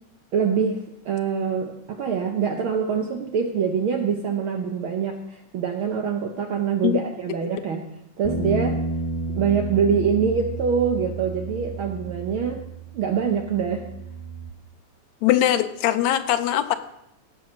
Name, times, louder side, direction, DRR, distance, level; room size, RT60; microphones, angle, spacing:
voice 1, 0.3-7.8 8.2-8.8 9.3-12.7 12.9-13.8, right 6 dB, 70° right, 3 dB, 1.3 m, -24 dB
sound 1, 8.2-14.5, right 3 dB, 20° left, 1.1 m, -31 dB
voice 2, 15.2-16.7, left 12 dB, 75° left, 10 dB, 1.9 m, -21 dB
16.5 x 7.0 x 6.3 m, 0.80 s
omnidirectional pair, 3.4 m